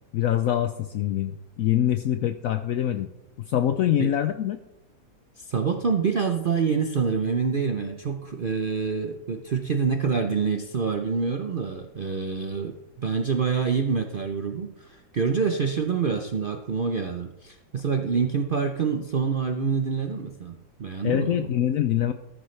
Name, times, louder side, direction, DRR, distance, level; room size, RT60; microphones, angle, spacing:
voice 1, 0.1-3.1 3.5-4.6 21.0-22.1, left 11 dB, 70° left, 9 dB, 0.9 m, -24 dB
voice 2, 5.4-21.5, right 5 dB, 50° right, 5 dB, 0.6 m, -26 dB
13.5 x 10.5 x 3.2 m, 0.90 s
omnidirectional pair, 1.7 m